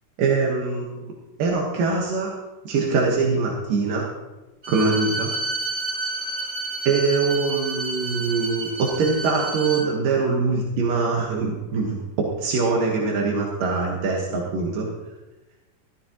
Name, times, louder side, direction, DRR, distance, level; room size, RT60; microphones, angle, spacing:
voice 1, 0.2-1.1 1.4-2.4 2.6-4.1 4.7-5.3 6.9-12.0 12.4-14.9, right 4 dB, 80° right, -2 dB, 3.0 m, -23 dB
Bowed string instrument, 4.6-9.9, right 2 dB, 25° right, 3.1 m, -30 dB
14.0 x 13.5 x 2.9 m, 1.1 s
omnidirectional pair, 3.8 m